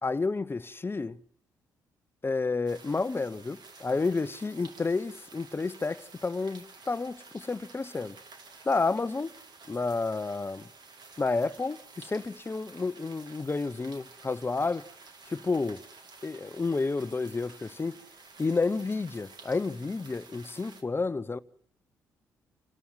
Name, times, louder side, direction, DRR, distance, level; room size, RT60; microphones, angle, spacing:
voice 1, 0.0-1.2 2.2-8.2 8.6-9.3 9.7-10.7 11.2-14.8 15.3-15.8 16.2-18.0 18.4-21.4, left 3 dB, 25° left, 0.8 m, -30 dB
sound 1, 2.7-20.8, right 4 dB, 50° right, 2.3 m, -52 dB
27.5 x 12.5 x 7.8 m
hypercardioid pair, 45°, 9 cm